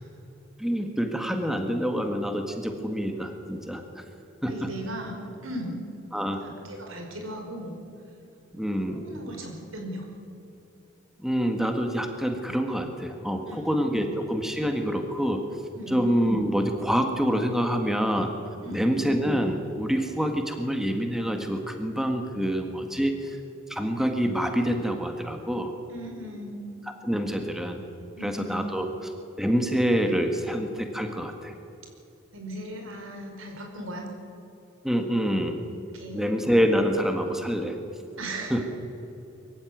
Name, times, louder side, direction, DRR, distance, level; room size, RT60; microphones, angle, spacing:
voice 1, 0.6-4.0 4.4-4.7 6.1-6.4 8.5-9.0 11.2-15.4 15.9-18.3 18.7-23.4 23.7-25.7 27.0-27.8 28.2-31.5 34.8-35.6 36.1-37.8 38.5-38.6, equal, ahead, 5 dB, 1.6 m, -26 dB
voice 2, 4.5-5.8 6.4-7.8 8.9-10.0 13.5-14.1 15.7-16.0 18.6-18.9 25.9-26.6 28.2-28.5 28.8-28.9 32.3-34.0 35.9-36.3 38.2-38.6, equal, 85° right, 2 dB, 5.2 m, -38 dB
23.5 x 15.0 x 9.5 m, 2.9 s
head